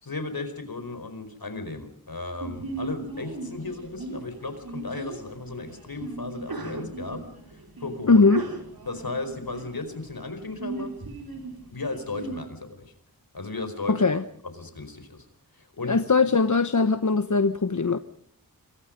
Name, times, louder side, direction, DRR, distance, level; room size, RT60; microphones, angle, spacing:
voice 1, 0.0-8.3 8.9-10.9 11.7-12.9 13.3-14.0 14.4-15.3 15.5-16.0, left 3 dB, 75° left, 9 dB, 4.8 m, -35 dB
Sneeze, 2.4-12.4, right 2 dB, 75° right, 4.9 m, -38 dB
voice 2, 8.1-8.4 13.9-14.2 15.9-18.0, left 4 dB, 55° left, 10 dB, 1.1 m, -20 dB
27.5 x 23.5 x 5.3 m, 0.64 s
wide cardioid pair, 70°, 36 cm